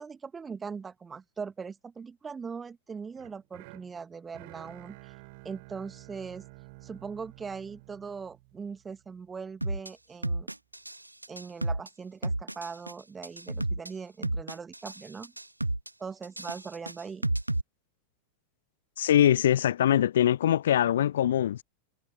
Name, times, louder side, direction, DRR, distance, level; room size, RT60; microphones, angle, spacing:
voice 1, 0.0-5.1 5.4-6.4 6.8-10.5 11.3-15.3 16.0-17.3, right 5 dB, 15° right, 1.3 m, -40 dB
sound 1, 3.2-9.3, right 27 dB, 45° right, 6.7 m, -51 dB
sound 2, 9.6-9.9 10.2-11.0 11.2-11.9 12.2-12.9 13.2-13.9 14.2-15.0 15.2-15.9 16.2-17.6, right 1 dB, 85° right, 1.6 m, -31 dB
voice 2, 19.0-21.6, left 11 dB, 60° left, 0.5 m, -23 dB
figure-of-eight pair, 90°, 0 cm